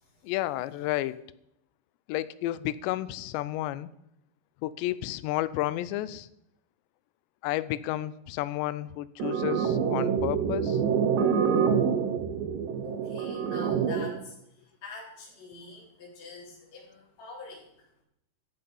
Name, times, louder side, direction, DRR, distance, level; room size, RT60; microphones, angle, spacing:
voice 1, 0.2-1.2 2.1-3.9 4.6-6.3 7.4-10.8, left 15 dB, 85° left, 16 dB, 2.8 m, -31 dB
sound 1, 9.2-14.2, right 7 dB, 70° right, 2.2 m, -26 dB
voice 2, 12.8-17.6, left 3 dB, 40° left, -7 dB, 5.2 m, -45 dB
14.5 x 8.8 x 5.5 m, 0.78 s
omnidirectional pair, 5.0 m